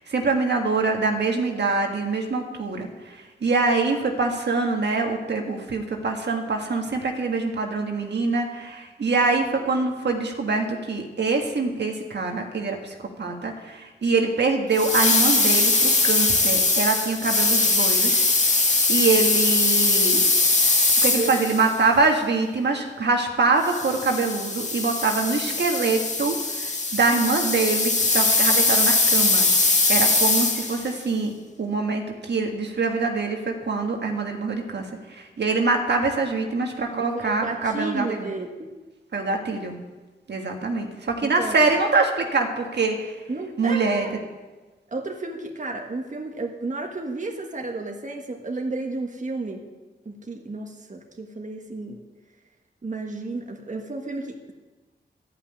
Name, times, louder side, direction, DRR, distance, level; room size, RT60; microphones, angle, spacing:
voice 1, 0.0-18.2 18.5-20.2 21.0-29.5 29.9-31.3 31.6-38.3 39.1-39.8 40.3-43.2 43.6-44.3, right 3 dB, 65° right, 2 dB, 1.7 m, -24 dB
sound 1, 14.7-21.7 23.6-30.9, left 3 dB, 40° left, 1.8 m, -21 dB
voice 2, 37.1-38.7 41.2-41.6 43.3-44.2 44.9-49.7 50.0-52.0 52.8-54.5, right 3 dB, 40° right, 2 dB, 1.5 m, -32 dB
13.0 x 5.9 x 8.9 m, 1.2 s
cardioid pair, 65°, 19 cm